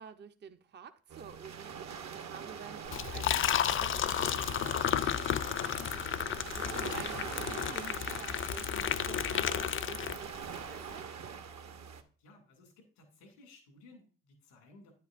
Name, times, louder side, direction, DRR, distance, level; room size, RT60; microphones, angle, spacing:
voice 1, 0.0-6.1 6.5-11.1, right 7 dB, 35° right, 0.6 m, -51 dB
sound 1, 1.1-12.0, right 7 dB, 55° right, 1.0 m, -43 dB
Liquid, 2.9-10.5, left 10 dB, 40° left, 0.4 m, -32 dB
voice 2, 12.2-14.9, left 2 dB, 90° left, 2.3 m, -58 dB
9.2 x 8.3 x 2.5 m
hypercardioid pair, 50°, 32 cm